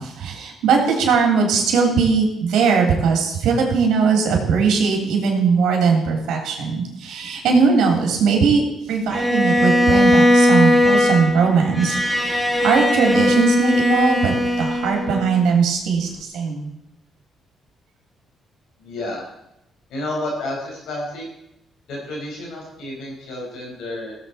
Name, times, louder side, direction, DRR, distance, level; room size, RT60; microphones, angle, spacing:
voice 1, 0.0-8.6 8.9-14.3 14.6-16.7, right 5 dB, 80° right, 1 dB, 2.9 m, -19 dB
Bowed string instrument, 9.1-15.4, left 1 dB, 5° left, 1.5 m, -18 dB
voice 2, 18.8-19.3 19.9-21.3 21.9-24.1, left 1 dB, 85° left, -2 dB, 4.9 m, -30 dB
17.0 x 7.7 x 4.2 m, 0.84 s
cardioid pair, 90°, 0 cm